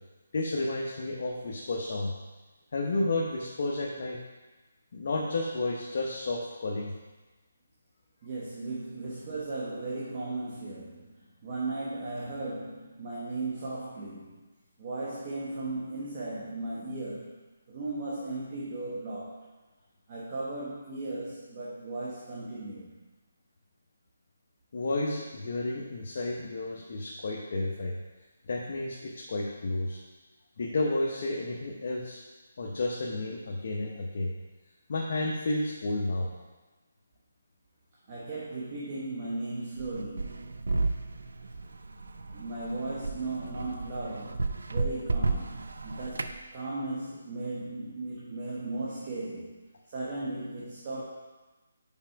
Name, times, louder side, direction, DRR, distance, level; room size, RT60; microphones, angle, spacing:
voice 1, 0.3-2.1 2.7-4.2 4.9-6.9 24.7-27.9 28.5-30.0 30.6-32.2 32.6-34.3 34.9-36.3, left 2 dB, 50° left, -3 dB, 0.9 m, -31 dB
voice 2, 8.2-14.4 14.8-17.3 17.7-19.4 20.1-22.9 38.1-40.6 42.3-49.6 49.9-51.0, right 2 dB, 30° right, -7 dB, 1.1 m, -36 dB
sound 1, 39.8-46.4, right 3 dB, 85° right, 0.5 m, -33 dB
5.5 x 5.0 x 4.6 m, 1.2 s
hypercardioid pair, 170°, 0 cm